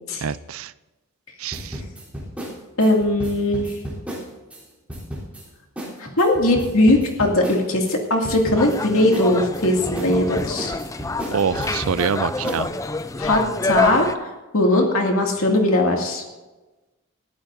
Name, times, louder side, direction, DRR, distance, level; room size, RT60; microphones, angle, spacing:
voice 1, 0.2-0.7 1.4-1.8 11.3-12.7, right 6 dB, 75° right, 16 dB, 0.5 m, -25 dB
sound 1, 1.5-4.6 4.9-5.4 5.8-5.9 6.2-8.0 8.2-8.8 9.1-12.1 12.4-12.6, equal, 5° right, 3.6 m, -33 dB
voice 2, 2.8-3.7 6.0-10.7 13.2-14.1 14.5-16.2, left 1 dB, 75° left, 1 dB, 2.4 m, -19 dB
sound 2, 8.6-14.2, left 3 dB, 15° left, 0.4 m, -27 dB
21.0 x 14.0 x 2.7 m, 1.1 s
head